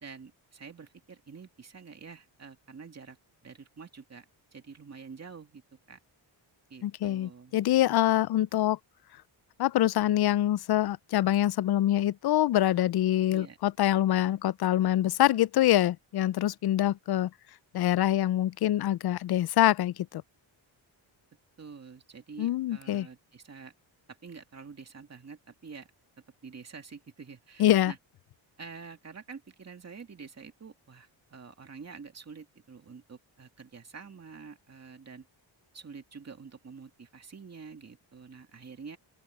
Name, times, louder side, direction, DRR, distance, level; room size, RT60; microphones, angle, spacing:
voice 1, 0.0-3.2 3.4-5.6 5.9-6.0 6.7-7.5 13.3-13.6 21.6-23.7 24.1-25.9 26.4-28.0 28.6-35.3 35.7-39.0, right 5 dB, 30° right, 2.5 m, -47 dB
voice 2, 6.8-8.8 9.6-17.3 17.7-20.2 22.4-23.1 27.6-27.9, left 13 dB, 55° left, 0.5 m, -25 dB
open air
wide cardioid pair, 135°, 48 cm